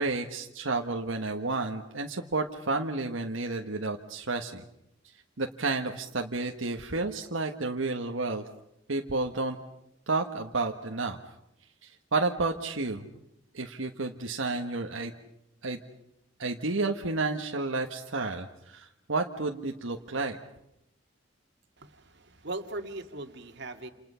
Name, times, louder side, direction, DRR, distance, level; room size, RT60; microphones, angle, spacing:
voice 1, 0.0-4.6 5.4-8.4 8.9-9.6 10.1-11.2 11.8-13.1 13.5-15.1 15.6-15.8 16.4-20.4, right 3 dB, 80° right, 3 dB, 1.4 m, -31 dB
voice 2, 21.8-23.9, right 2 dB, 60° right, 6 dB, 2.2 m, -39 dB
29.0 x 28.5 x 5.7 m, 0.83 s
head